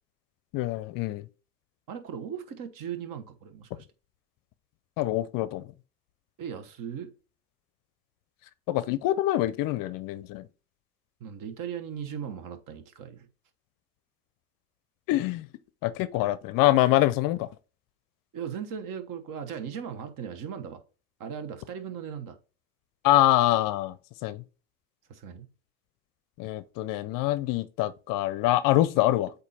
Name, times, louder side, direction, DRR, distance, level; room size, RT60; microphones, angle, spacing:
voice 1, 0.5-1.3 5.0-5.7 8.7-10.5 15.1-15.5 15.8-17.5 23.0-24.0 24.2-24.4 26.4-29.3, left 15 dB, 50° left, 0.6 m, -25 dB
voice 2, 1.9-3.9 6.4-7.1 11.2-13.3 18.3-20.8 21.2-22.4 25.1-25.5, right 8 dB, 45° right, 1.2 m, -38 dB
8.1 x 2.8 x 4.2 m
hypercardioid pair, 80°, 45 cm